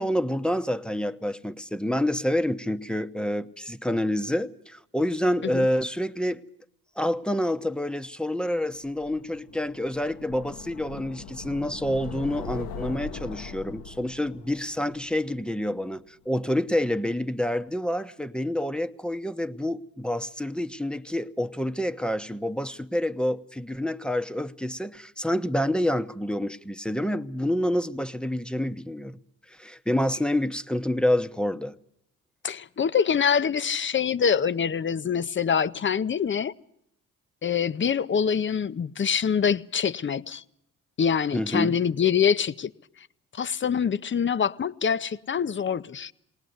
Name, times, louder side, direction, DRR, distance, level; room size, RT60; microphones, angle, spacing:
voice 1, 0.0-6.4 7.0-29.2 29.5-31.7 41.3-41.8, left 1 dB, ahead, 0.9 m, -28 dB
sound 1, 8.8-15.9, left 5 dB, 75° left, 1.2 m, -41 dB
voice 2, 32.4-36.5 37.4-40.4 41.0-42.7 43.3-46.1, left 7 dB, 30° left, 0.7 m, -25 dB
20.5 x 19.0 x 7.9 m
supercardioid pair, 55°, 36 cm